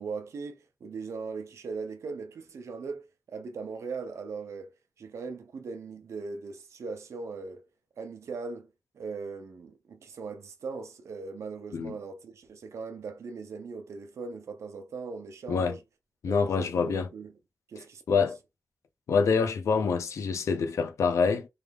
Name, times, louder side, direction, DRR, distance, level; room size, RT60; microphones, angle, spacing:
voice 1, 0.0-4.7 5.0-7.6 8.0-8.7 8.9-15.8 16.3-17.3 17.7-18.3, right 4 dB, 75° right, 0.6 m, -39 dB
voice 2, 16.2-17.1 18.1-18.4 19.1-21.5, left 5 dB, 90° left, 0.5 m, -26 dB
3.3 x 2.4 x 3.3 m
wide cardioid pair, 170°, 5 cm